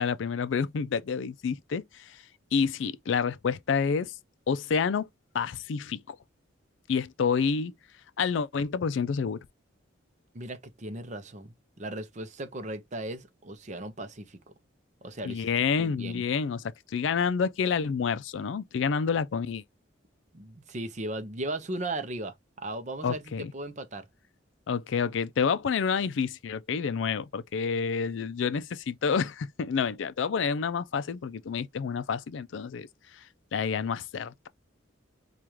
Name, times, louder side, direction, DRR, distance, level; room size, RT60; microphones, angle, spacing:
voice 1, 0.0-2.2 2.5-4.1 4.5-5.1 5.3-6.2 6.9-7.7 8.2-9.4 15.2-19.6 23.0-23.5 24.7-32.9 33.2-33.3 33.5-34.5, left 6 dB, 70° left, 0.4 m, -28 dB
voice 2, 10.3-14.4 15.0-15.5 15.8-16.2 20.3-23.2 23.5-24.1, right 2 dB, 40° right, 0.6 m, -37 dB
4.8 x 2.4 x 2.9 m
head